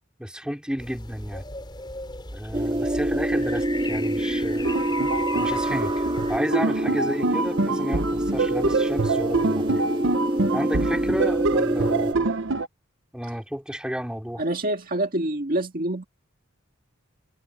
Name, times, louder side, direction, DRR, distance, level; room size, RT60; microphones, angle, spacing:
voice 1, 0.2-1.4 2.3-4.7 5.3-9.6 10.5-12.1 13.1-14.4, equal, 5° right, 4.1 m, -32 dB
sound 1, 0.8-6.4, left 2 dB, 20° left, 4.8 m, -38 dB
sound 2, 2.5-12.1, right 1 dB, 25° right, 1.7 m, -26 dB
sound 3, 4.6-12.7, right 3 dB, 60° right, 0.9 m, -26 dB
voice 2, 14.4-16.1, right 1 dB, 45° right, 1.9 m, -26 dB
head